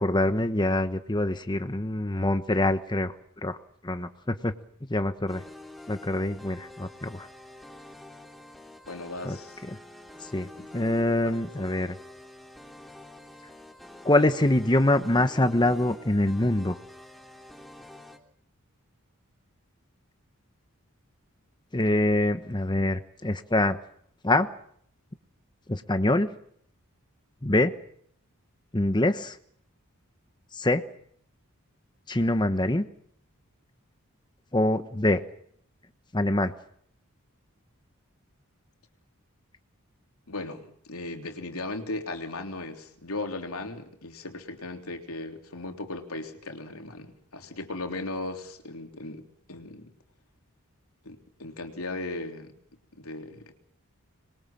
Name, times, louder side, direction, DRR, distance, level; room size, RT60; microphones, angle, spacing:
voice 1, 0.0-3.1 3.4-3.6 3.8-4.5 4.9-5.4 5.9-7.3 9.2-9.4 10.2-12.0 14.0-16.7 21.7-23.8 24.2-24.5 25.7-26.3 27.4-27.7 28.7-29.4 30.5-30.8 32.1-32.9 34.5-35.2 36.1-36.5, left 1 dB, 20° left, 9 dB, 1.1 m, -25 dB
sound 1, 5.3-18.2, left 1 dB, ahead, 3.0 m, -47 dB
voice 2, 8.9-9.6 10.6-10.7 11.2-11.6 40.3-49.2 49.5-49.9 51.0-52.5 53.0-53.5, left 2 dB, 80° left, 5 dB, 3.4 m, -37 dB
26.0 x 22.0 x 7.5 m, 0.65 s
head